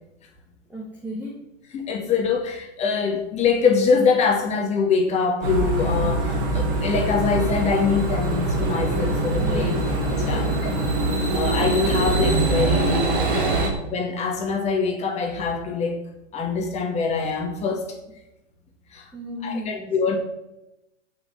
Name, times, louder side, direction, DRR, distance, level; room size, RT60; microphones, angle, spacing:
voice 1, 0.7-1.4 9.4-9.7 10.3-10.6 12.8-13.0 13.4-13.6 19.1-19.9, left 1 dB, 5° right, -1 dB, 1.9 m, -35 dB
voice 2, 1.7-9.8 10.1-10.7 11.3-13.5 13.9-16.0 16.3-18.0 18.9-19.1 19.4-20.2, left 5 dB, 20° left, 1 dB, 2.2 m, -24 dB
sound 1, 5.4-13.7, right 2 dB, 45° right, 4.1 m, -23 dB
14.5 x 6.6 x 7.9 m, 0.93 s
hypercardioid pair, 150°, 37 cm